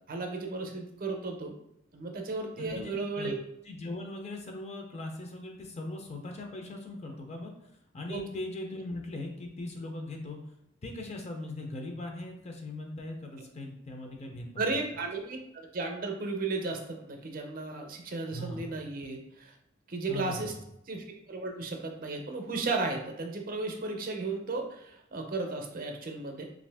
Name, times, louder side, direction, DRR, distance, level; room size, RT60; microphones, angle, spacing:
voice 1, 0.1-1.5 1.9-3.3 8.1-8.2 14.6-19.5 19.9-20.5 20.9-26.4, right 3 dB, 50° right, 3 dB, 0.5 m, -34 dB
voice 2, 2.6-3.4 3.7-7.5 7.9-10.4 10.8-14.8 18.3-18.7 20.1-20.4, left 2 dB, 35° left, 2 dB, 0.5 m, -39 dB
2.7 x 2.5 x 3.4 m, 0.80 s
head